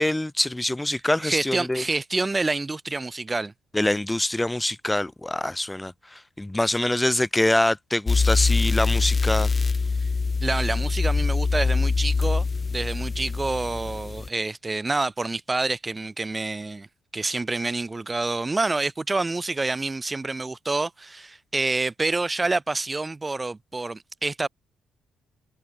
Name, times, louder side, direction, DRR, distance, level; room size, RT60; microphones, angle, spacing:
voice 1, 0.0-1.8 3.7-9.5, left 1 dB, 10° left, 3.9 m, -25 dB
voice 2, 1.2-3.5 10.4-12.5 12.7-16.9 17.1-24.5, right 3 dB, 20° right, 7.2 m, -27 dB
sound 1, 8.1-14.3, left 4 dB, 30° left, 2.1 m, -24 dB
cardioid pair, 90°, 0 cm